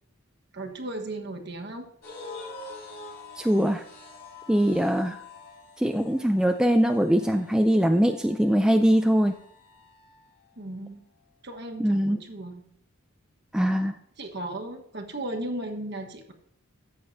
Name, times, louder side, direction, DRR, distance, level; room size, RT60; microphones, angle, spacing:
voice 1, 0.5-1.8 10.6-11.0 11.4-12.6 14.2-16.3, right 1 dB, 50° right, 4 dB, 1.3 m, -36 dB
sound 1, 2.0-10.4, left 3 dB, 45° left, 3.7 m, -46 dB
voice 2, 3.4-3.8 4.5-5.2 5.8-9.4 11.8-12.2 13.5-13.9, equal, 5° right, 5 dB, 0.3 m, -22 dB
13.5 x 7.7 x 2.7 m, 0.68 s
head